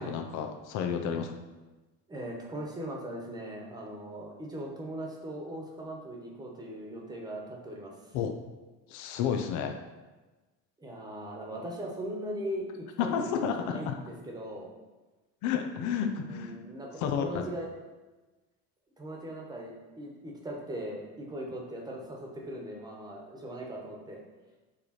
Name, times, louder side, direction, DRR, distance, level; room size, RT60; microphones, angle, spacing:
voice 1, 0.0-1.3 8.1-8.3 8.9-9.8 13.0-13.9 15.4-16.5 17.0-17.4, left 7 dB, 65° left, 4 dB, 0.7 m, -31 dB
voice 2, 2.1-8.2 10.8-14.7 16.0-17.7 19.0-24.2, right 1 dB, 10° right, -1 dB, 1.2 m, -39 dB
7.3 x 3.3 x 4.3 m, 1.2 s
cardioid pair, 140°, 32 cm